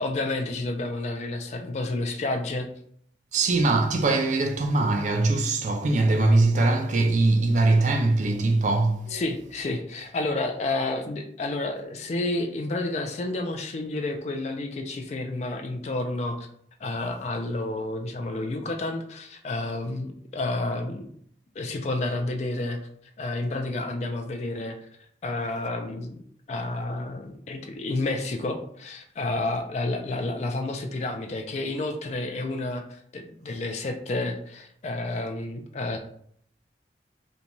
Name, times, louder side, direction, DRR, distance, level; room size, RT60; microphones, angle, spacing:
voice 1, 0.0-2.7 9.1-16.5 16.8-21.1 21.6-22.8 23.2-24.8 25.2-26.2 26.5-36.0, left 2 dB, 40° left, 0.3 m, -30 dB
voice 2, 3.3-9.2, right 2 dB, 40° right, 0.3 m, -22 dB
2.5 x 2.2 x 2.9 m
head